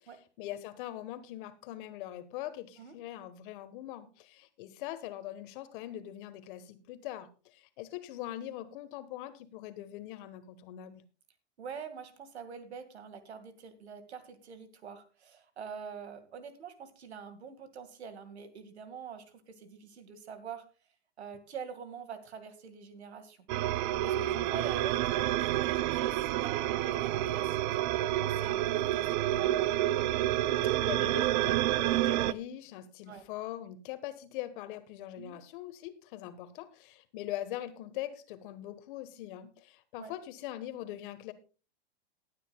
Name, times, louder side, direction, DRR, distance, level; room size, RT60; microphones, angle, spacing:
voice 1, 0.0-11.0 30.8-41.3, left 13 dB, 55° left, 10 dB, 1.4 m, -42 dB
voice 2, 11.6-20.7 21.2-23.5 24.0-27.9 28.2-29.8 33.1-33.2 35.2-35.4 40.0-40.1, right 6 dB, 90° right, 11 dB, 2.1 m, -45 dB
sound 1, 23.5-32.3, right 14 dB, 45° right, 0.5 m, -29 dB
19.5 x 9.2 x 2.3 m, 0.34 s
hypercardioid pair, 125°, 32 cm